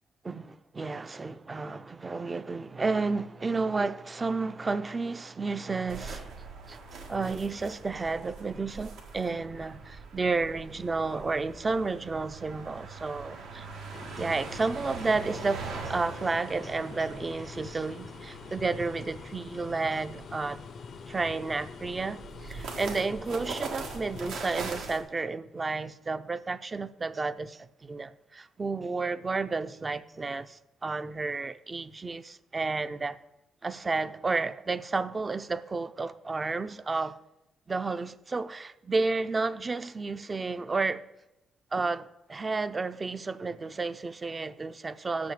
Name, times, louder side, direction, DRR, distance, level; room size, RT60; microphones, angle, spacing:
voice 1, 0.2-6.3 6.7-13.7 14.2-20.6 21.1-33.2 33.6-37.2 37.7-41.1 41.7-45.3, right 3 dB, 30° right, 0.4 m, -31 dB
sound 1, 5.9-25.0, right 4 dB, 85° right, 1.6 m, -42 dB
sound 2, 13.9-24.4, left 6 dB, 55° left, 0.4 m, -45 dB
6.8 x 6.1 x 7.2 m
cardioid pair, 90°, 0 cm